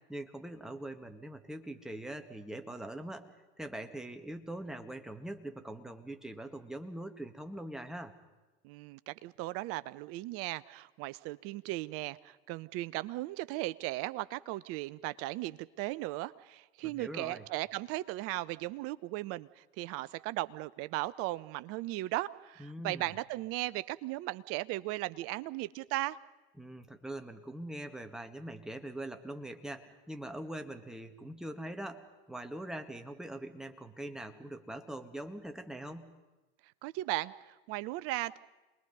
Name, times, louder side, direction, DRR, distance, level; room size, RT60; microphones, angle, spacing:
voice 1, 0.0-8.1 16.8-17.5 22.6-23.1 26.6-36.1, right 1 dB, ahead, 6 dB, 1.7 m, -43 dB
voice 2, 8.6-26.2 36.8-38.4, right 18 dB, 50° right, 17 dB, 0.7 m, -37 dB
28.0 x 20.5 x 5.5 m, 1.1 s
hypercardioid pair, 85°, 31 cm